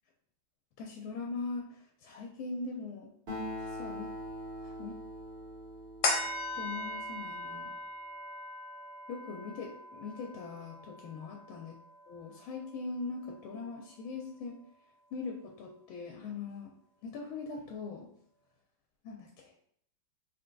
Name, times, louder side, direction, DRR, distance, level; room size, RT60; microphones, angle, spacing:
voice 1, 0.8-3.1 3.6-4.1 4.6-5.0 6.5-7.7 9.1-11.7 12.1-14.6 15.1-16.7 17.0-18.1 19.0-19.5, left 4 dB, 85° left, 1 dB, 1.4 m, -41 dB
Acoustic guitar, 3.3-7.1, equal, 40° right, 0.8 m, -42 dB
sound 1, 6.0-12.8 13.2-13.3, left 2 dB, 65° left, 1.2 m, -38 dB
3.8 x 3.8 x 2.2 m, 0.66 s
omnidirectional pair, 2.2 m